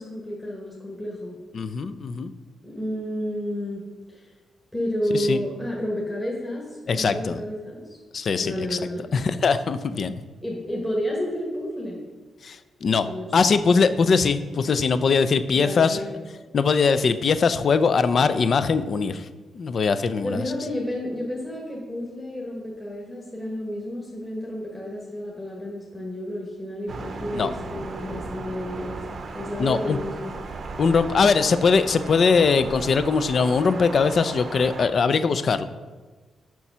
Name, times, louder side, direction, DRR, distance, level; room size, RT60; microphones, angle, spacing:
voice 1, 0.0-1.4 2.6-4.3 4.7-8.0 8.4-9.1 10.4-12.0 13.1-13.3 15.5-16.1 20.2-29.0 29.3-30.3, equal, 10° left, -3 dB, 1.3 m, -31 dB
voice 2, 1.5-2.3 5.1-5.4 6.9-7.4 8.1-8.8 9.1-10.1 12.4-13.1 13.3-16.0 16.5-19.3 19.5-20.4 27.3-27.5 29.6-30.0 30.8-35.6, left 5 dB, 45° left, 12 dB, 0.4 m, -21 dB
Thunder, 26.9-34.9, right 3 dB, 45° right, 0.7 m, -36 dB
6.9 x 6.0 x 5.6 m, 1.3 s
cardioid pair, 140°, 0 cm